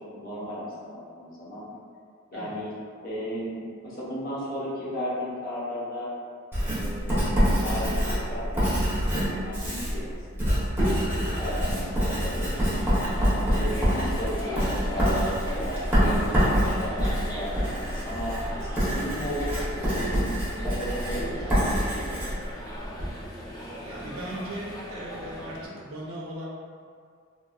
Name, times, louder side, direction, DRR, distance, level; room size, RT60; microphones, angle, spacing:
voice 1, 0.1-1.7 2.3-2.7 3.0-6.1 6.7-8.0 8.3-8.6 8.9-10.1 10.3-10.5 10.9-12.8 13.3-17.5 17.9-20.3 20.6-22.2, equal, 45° left, -8 dB, 0.8 m, -35 dB
Writing, 6.5-23.1, equal, 10° right, 0.8 m, -26 dB
sound 1, 11.3-25.7, equal, 20° left, 0.4 m, -39 dB
voice 2, 23.8-26.5, right 1 dB, 90° right, -3 dB, 0.6 m, -38 dB
3.0 x 2.6 x 2.3 m, 2.1 s
head